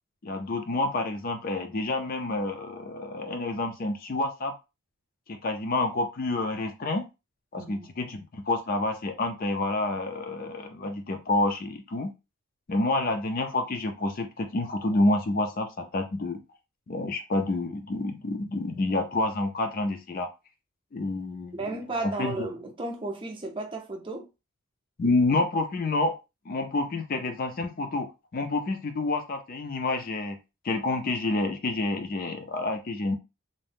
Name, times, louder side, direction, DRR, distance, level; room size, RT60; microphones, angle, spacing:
voice 1, 0.2-4.5 5.3-7.0 7.5-12.1 12.7-16.4 16.9-20.3 20.9-21.6 22.0-22.5 25.0-26.2 26.5-28.1 28.3-30.4 30.6-33.2, left 2 dB, 40° left, 0.4 m, -28 dB
voice 2, 7.6-7.9 21.6-24.3, right 2 dB, 25° right, 0.5 m, -34 dB
2.6 x 2.0 x 3.3 m
head